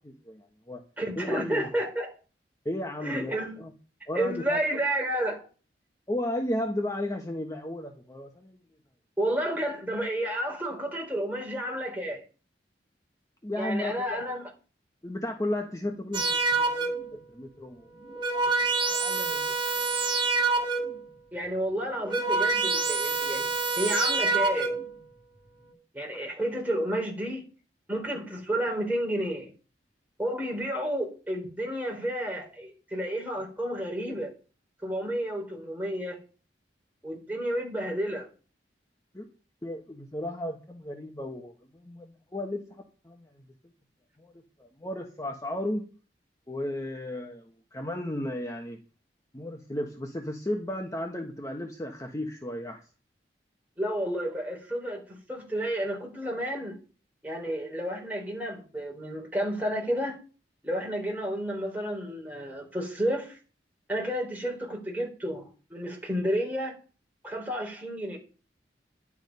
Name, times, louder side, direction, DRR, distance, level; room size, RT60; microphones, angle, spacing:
voice 1, 0.0-0.8 1.2-1.7 2.6-3.3 3.6-3.7 4.1-4.6 6.1-8.6 13.4-14.2 15.0-17.9 18.9-19.5 39.1-39.3 39.6-43.3 44.2-44.3 44.6-45.8 46.5-47.4 47.7-48.8 49.3-52.8, left 1 dB, 20° left, 1.2 m, -34 dB
voice 2, 1.0-2.1 3.0-3.6 4.1-5.5 9.2-12.2 13.6-14.4 21.3-24.8 25.9-27.5 27.9-29.5 30.2-34.3 34.8-36.2 37.0-38.3 53.8-56.7 57.2-60.2 60.6-63.4 63.9-66.7 67.2-68.2, right 1 dB, 10° right, 4.3 m, -31 dB
sound 1, 16.1-17.2 17.9-21.1 21.8-25.0, right 3 dB, 25° right, 2.4 m, -27 dB
11.0 x 9.8 x 5.5 m
head